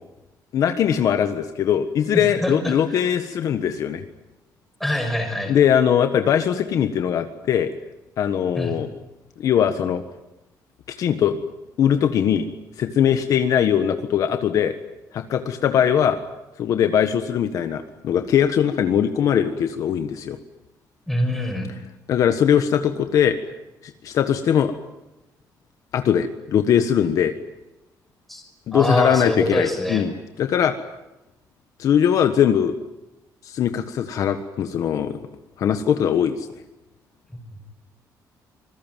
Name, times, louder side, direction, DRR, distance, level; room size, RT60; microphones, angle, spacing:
voice 1, 0.5-4.0 5.5-7.7 8.2-8.9 9.4-10.0 11.0-11.4 11.8-12.5 12.8-14.7 15.1-16.2 16.6-20.4 22.1-23.4 24.0-24.7 25.9-27.3 28.7-30.7 31.8-32.7 33.4-35.2 35.6-36.5, left 9 dB, 55° left, 8 dB, 1.4 m, -20 dB
voice 2, 2.3-2.8 4.8-5.5 8.6-8.8 21.1-21.7 28.3-28.4 28.7-30.1, left 1 dB, ahead, 3 dB, 5.7 m, -24 dB
26.0 x 21.0 x 9.2 m, 0.97 s
cardioid pair, 165°, 7 cm